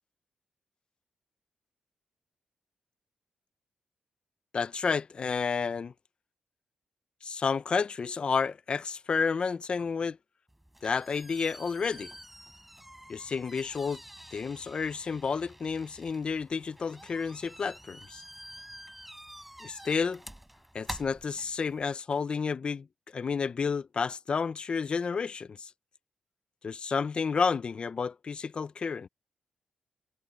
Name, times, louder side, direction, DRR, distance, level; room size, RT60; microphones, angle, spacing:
voice 1, 4.5-5.9 7.2-10.2 10.8-12.1 13.1-14.0 14.3-18.2 19.6-20.2 20.7-22.9 23.1-25.7 26.6-29.1, left 5 dB, 45° left, 0.7 m, -31 dB
sound 1, 10.5-21.9, right 1 dB, 5° right, 6.3 m, -48 dB
cardioid pair, 95°, 2 cm